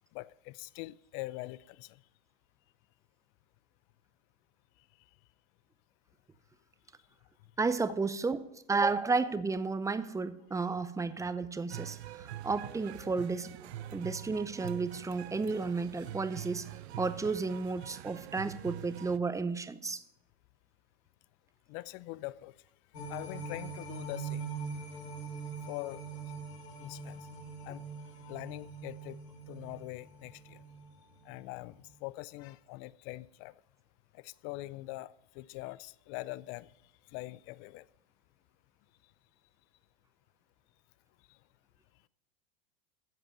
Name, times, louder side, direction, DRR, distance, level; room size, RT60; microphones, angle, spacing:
voice 1, 0.1-2.0 13.8-13.9 21.7-22.5 23.1-24.5 25.7-26.0 26.8-27.3 27.6-27.8 28.1-29.2 29.5-30.6 31.2-33.5 34.1-36.7 37.1-37.8, left 19 dB, 55° left, 0.4 m, -43 dB
voice 2, 7.6-8.4 8.7-13.5 13.9-16.7 17.0-20.0, right 4 dB, 10° right, 0.6 m, -32 dB
sound 1, 11.7-19.2, right 12 dB, 90° right, 0.5 m, -45 dB
sound 2, 22.9-31.3 31.7-31.8, right 4 dB, 80° left, 2.7 m, -43 dB
15.5 x 5.3 x 6.6 m
hypercardioid pair, 100°, 31 cm